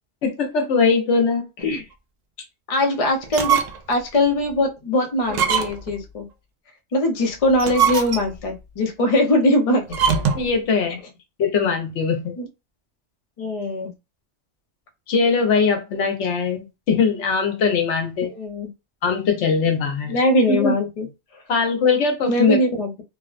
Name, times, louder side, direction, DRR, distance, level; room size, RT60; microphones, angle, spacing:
voice 1, 0.2-1.5 10.3-11.0 11.4-12.4 15.1-18.3 19.0-20.2 20.5-20.8 21.5-22.6, left 5 dB, 90° left, 1.1 m, -21 dB
voice 2, 2.7-3.6 3.9-6.3 6.9-9.9 12.4-12.5 13.4-13.9 18.2-18.7 20.1-21.1 22.3-22.9, left 1 dB, 40° left, 0.6 m, -21 dB
sound 1, 3.2-4.0 4.4-4.5 5.3-6.0 7.4-8.5 9.9-10.5, right 6 dB, 60° right, 0.4 m, -22 dB
3.3 x 2.1 x 2.4 m
omnidirectional pair, 1.2 m